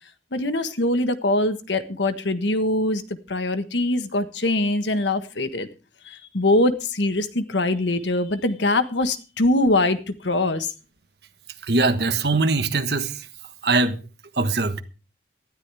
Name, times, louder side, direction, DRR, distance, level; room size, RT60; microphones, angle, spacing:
voice 1, 0.3-3.0 3.3-5.7 6.0-10.7, left 2 dB, 80° left, 1.4 m, -23 dB
voice 2, 11.6-13.3 13.6-14.0 14.4-14.8, right 3 dB, 65° right, 1.3 m, -21 dB
19.0 x 13.0 x 3.5 m
head